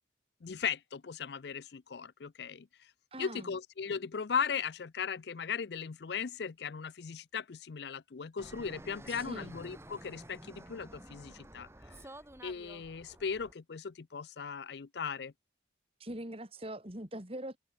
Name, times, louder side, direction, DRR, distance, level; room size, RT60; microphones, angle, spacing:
voice 1, 0.4-2.7 3.2-11.7 12.4-15.3, left 6 dB, 65° left, 0.5 m, -37 dB
voice 2, 3.1-3.6 9.1-9.6 16.0-17.6, right 1 dB, 30° right, 3.3 m, -42 dB
Fixed-wing aircraft airplane, 8.4-13.5, right 1 dB, 15° right, 2.5 m, -51 dB
head